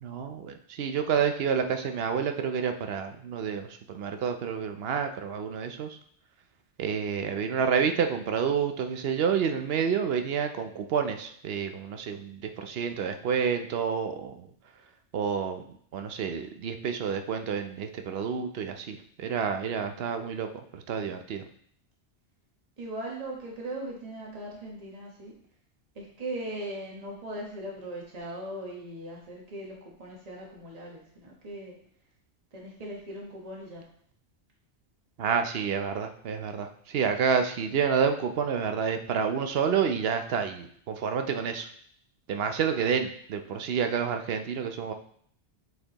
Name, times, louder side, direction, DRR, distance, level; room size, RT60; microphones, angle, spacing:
voice 1, 0.0-6.0 6.8-14.5 15.1-15.6 15.9-21.4 35.2-41.7 42.3-44.9, right 7 dB, 65° right, 7 dB, 0.8 m, -29 dB
voice 2, 22.8-25.3 25.9-31.8 32.5-33.9, right 1 dB, 35° right, -2 dB, 1.3 m, -39 dB
7.9 x 4.4 x 2.9 m, 0.62 s
omnidirectional pair, 1.2 m